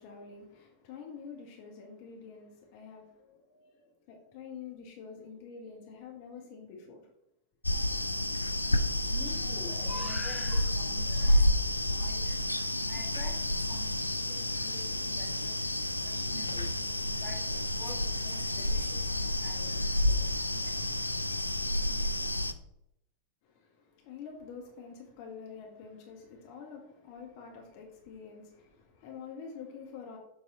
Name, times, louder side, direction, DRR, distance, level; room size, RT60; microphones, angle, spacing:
voice 1, 0.0-7.1 23.4-30.2, left 6 dB, 45° left, 1.3 m, -47 dB
sound 1, 7.6-22.5, left 1 dB, 85° left, 0.3 m, -30 dB
voice 2, 7.9-22.4, left 2 dB, 10° left, 1.6 m, -49 dB
7.4 x 3.5 x 4.3 m
figure-of-eight pair, 90°, 0 cm